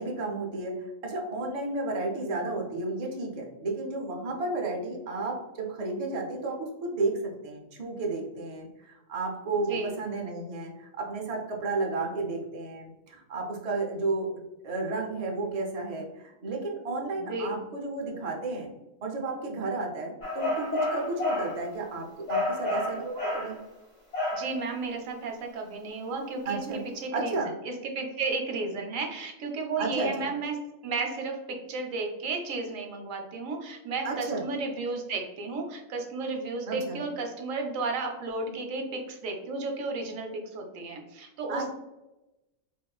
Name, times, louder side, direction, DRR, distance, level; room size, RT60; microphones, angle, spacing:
voice 1, 0.0-14.3 14.6-18.7 19.0-23.5 26.4-26.8 27.1-27.5 29.8-30.3 34.0-34.4 36.7-37.0 41.5-41.7, right 3 dB, 45° right, 0 dB, 0.5 m, -32 dB
voice 2, 17.1-17.6 24.3-26.6 27.0-27.4 27.6-30.5 30.8-41.7, right 3 dB, 90° right, 3 dB, 1.0 m, -33 dB
sound 1, 20.2-21.6 22.3-23.5 24.1-24.5, left 2 dB, 35° left, 1.2 m, -29 dB
3.6 x 2.5 x 2.3 m, 0.97 s
omnidirectional pair, 1.3 m